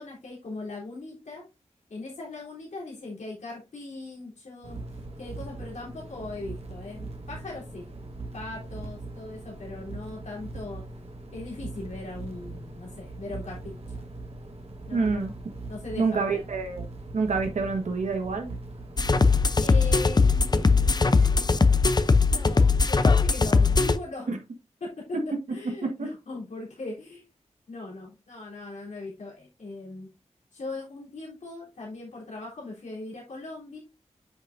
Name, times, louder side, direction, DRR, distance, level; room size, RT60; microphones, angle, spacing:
voice 1, 0.0-1.4 1.9-7.9 8.3-10.8 11.3-13.8 14.9-15.3 15.7-16.4 19.6-21.6 22.2-24.4 24.8-27.2 27.7-30.1 30.5-33.8, left 2 dB, 90° left, -4 dB, 3.5 m, -39 dB
sound 1, 4.6-21.3, right 2 dB, 55° right, 1.6 m, -40 dB
voice 2, 14.9-15.3 16.0-16.9 17.1-18.5 24.3-24.4 25.1-25.2 25.8-26.1, right 4 dB, 85° right, 5 dB, 1.4 m, -27 dB
sound 2, 19.0-24.0, left 4 dB, 35° left, 0.6 m, -20 dB
9.1 x 6.0 x 2.6 m, 0.26 s
wide cardioid pair, 95°, 12 cm